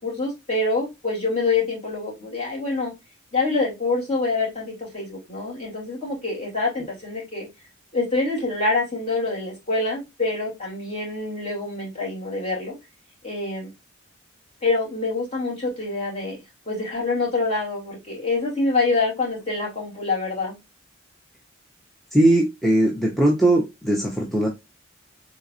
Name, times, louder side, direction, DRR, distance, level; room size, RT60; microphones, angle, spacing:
voice 1, 0.0-2.9 3.3-7.5 7.9-12.8 13.2-13.7 14.6-16.4 16.7-20.5, left 3 dB, 30° left, -4 dB, 2.6 m, -26 dB
voice 2, 22.1-24.5, right 1 dB, ahead, -2 dB, 0.6 m, -19 dB
4.0 x 3.9 x 2.5 m, 0.22 s
head